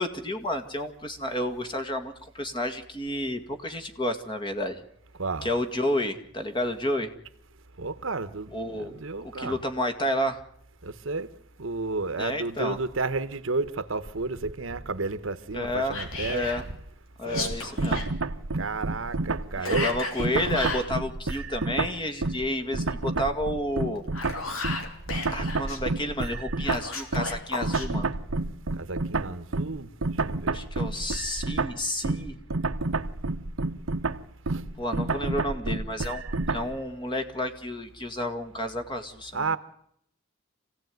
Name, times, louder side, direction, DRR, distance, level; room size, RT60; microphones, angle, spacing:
voice 1, 0.0-4.8 5.4-7.1 8.5-10.4 12.2-12.8 15.5-16.0 16.3-16.6 17.2-18.1 19.6-24.0 25.3-28.1 30.5-32.4 34.8-36.2 36.5-39.6, left 1 dB, 25° left, 2.1 m, -30 dB
voice 2, 7.8-9.6 10.8-11.3 11.6-16.5 17.3-17.6 18.5-19.9 28.8-29.9 30.2-30.6 34.5-34.6 39.3-39.6, right 3 dB, 70° right, 1.1 m, -32 dB
Whispering, 15.9-16.6 17.2-18.1 19.6-20.9 23.9-25.8 26.6-27.9, left 3 dB, 80° left, 3.6 m, -34 dB
sound 1, 17.3-22.5 22.7-36.7, right 3 dB, 85° right, 1.0 m, -29 dB
26.0 x 16.5 x 9.4 m
head